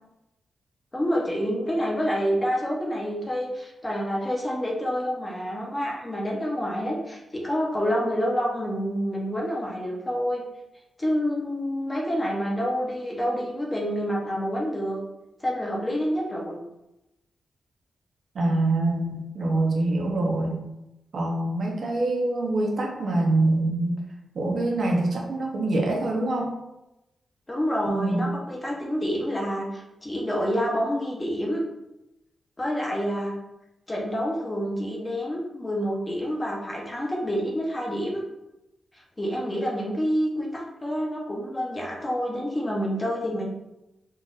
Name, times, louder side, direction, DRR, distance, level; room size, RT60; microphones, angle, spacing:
voice 1, 0.9-10.4 11.0-15.0 15.4-16.6 27.5-31.6 32.6-33.3 33.9-38.2 38.9-43.5, equal, 15° left, -3 dB, 0.8 m, -28 dB
voice 2, 18.3-20.6 21.1-24.0 24.3-26.5 27.9-28.2, right 2 dB, 50° right, 0 dB, 0.7 m, -25 dB
3.9 x 2.5 x 3.8 m, 0.93 s
wide cardioid pair, 155°, 0 cm